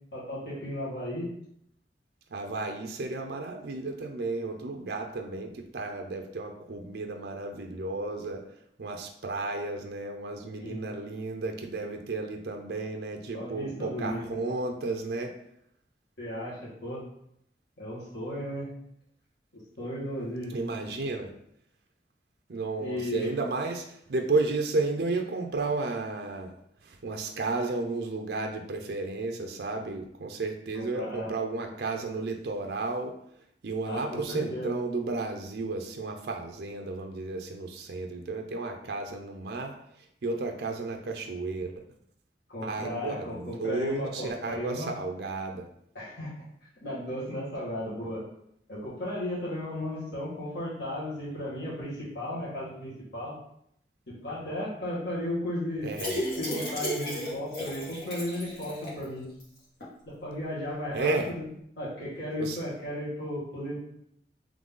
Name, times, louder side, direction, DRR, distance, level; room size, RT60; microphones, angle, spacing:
voice 1, 0.1-1.3 10.5-10.8 13.3-14.4 16.2-17.1 17.8-18.7 19.5-20.6 22.8-23.3 30.8-31.3 33.8-34.7 42.5-45.0 45.9-46.3 46.8-48.2 48.7-53.4 54.1-55.9 56.4-59.3 60.1-61.2 61.8-63.8, left 1 dB, 75° left, -8 dB, 1.7 m, -35 dB
voice 2, 2.3-8.4 8.8-15.3 20.5-21.3 22.5-26.5 26.8-33.1 33.6-39.7 40.2-41.8 42.6-45.7 55.8-56.2 60.9-61.3 62.4-62.6, right 3 dB, 70° right, 3 dB, 0.5 m, -33 dB
sound 1, 55.9-59.0 59.4-59.5 59.8-59.9, equal, 60° left, 1.7 m, -34 dB
3.8 x 3.1 x 3.7 m, 0.72 s
head